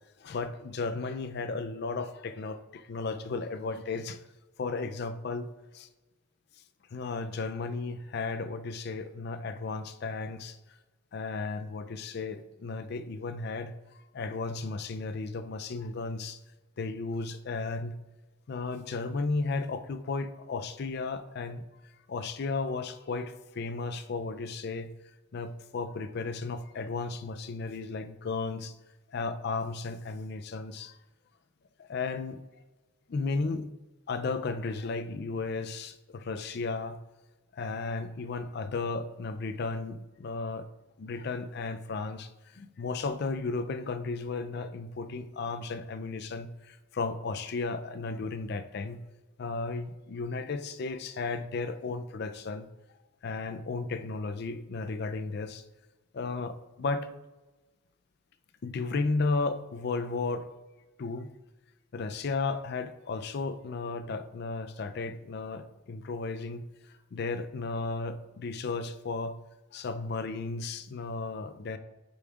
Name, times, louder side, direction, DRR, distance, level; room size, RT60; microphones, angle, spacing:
voice 1, 0.2-4.2 4.6-5.5 5.7-5.9 6.9-10.6 11.1-13.7 14.1-16.4 16.8-18.0 18.5-21.6 22.1-24.9 25.3-28.7 29.1-30.9 31.9-32.4 33.1-33.7 34.1-37.0 37.6-40.6 41.0-42.3 42.6-46.5 46.9-49.0 49.4-52.7 53.2-55.6 56.1-57.1 58.6-60.5 61.0-61.3 61.9-66.7 67.1-69.4 69.7-71.8, left 3 dB, 55° left, 10 dB, 0.4 m, -34 dB
8.2 x 5.3 x 2.4 m, 1.1 s
head